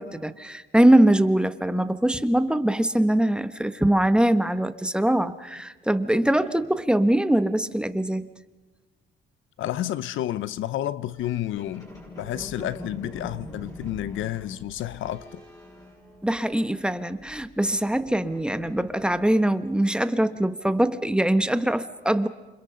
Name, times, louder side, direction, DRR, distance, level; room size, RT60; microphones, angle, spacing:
voice 1, 0.0-8.3 16.2-22.3, right 1 dB, 5° right, 1.1 m, -22 dB
voice 2, 9.6-11.9 12.2-15.4, left 13 dB, 80° left, 0.7 m, -30 dB
sound 1, 11.1-16.7 17.0-19.3, left 1 dB, 15° left, 7.6 m, -44 dB
28.5 x 26.0 x 5.6 m
cardioid pair, 90°, 20 cm